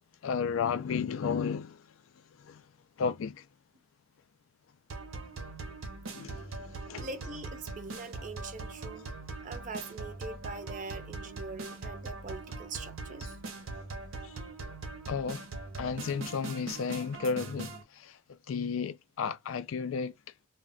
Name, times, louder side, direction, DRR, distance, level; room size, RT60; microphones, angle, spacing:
voice 1, 0.2-1.8 2.4-2.6 3.0-3.4 6.1-7.1 14.2-14.3 15.1-15.5 15.8-18.2 18.5-20.1, left 6 dB, 75° left, 0.4 m, -33 dB
sound 1, 4.9-17.8, right 3 dB, 80° right, 0.6 m, -41 dB
voice 2, 7.0-9.1 9.4-13.4, right 3 dB, 40° right, 0.4 m, -42 dB
2.2 x 2.1 x 3.7 m
head